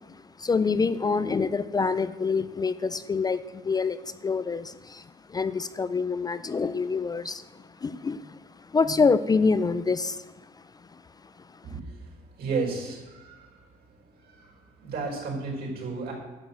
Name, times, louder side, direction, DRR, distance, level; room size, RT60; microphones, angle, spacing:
voice 1, 0.0-8.4 8.7-10.2, left 4 dB, 25° left, 13 dB, 0.5 m, -26 dB
voice 2, 12.4-13.5 14.2-14.5 14.8-16.1, right 4 dB, 65° right, 0 dB, 4.8 m, -32 dB
11.0 x 7.0 x 7.8 m, 1.2 s
cardioid pair, 110°, 17 cm